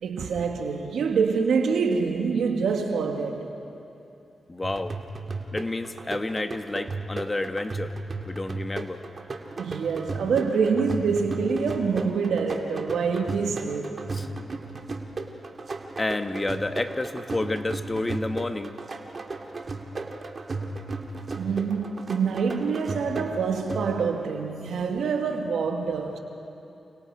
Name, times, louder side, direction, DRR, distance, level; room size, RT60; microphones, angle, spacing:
voice 1, 0.0-3.6 9.6-14.0 21.3-26.2, right 5 dB, 85° right, 2.3 m, -26 dB
voice 2, 4.5-4.9 5.5-7.9 8.3-9.0 14.1-14.3 16.0-18.8, left 2 dB, 25° left, 1.5 m, -30 dB
sound 1, 4.6-24.3, right 3 dB, 50° right, 2.2 m, -35 dB
29.5 x 28.5 x 5.0 m
cardioid pair, 55°, 0 cm